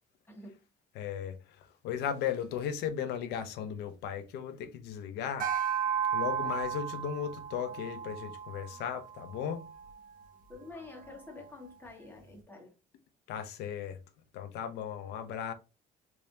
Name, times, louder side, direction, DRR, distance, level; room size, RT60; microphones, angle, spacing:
voice 1, 0.3-0.6 10.5-12.8, left 3 dB, 10° left, 1.5 m, -48 dB
voice 2, 0.9-5.5 6.1-9.7 13.3-14.0 14.3-15.5, left 8 dB, 85° left, 0.7 m, -36 dB
sound 1, 5.4-10.0, right 8 dB, 55° right, 0.7 m, -34 dB
3.5 x 3.1 x 2.7 m
cardioid pair, 110°, 17 cm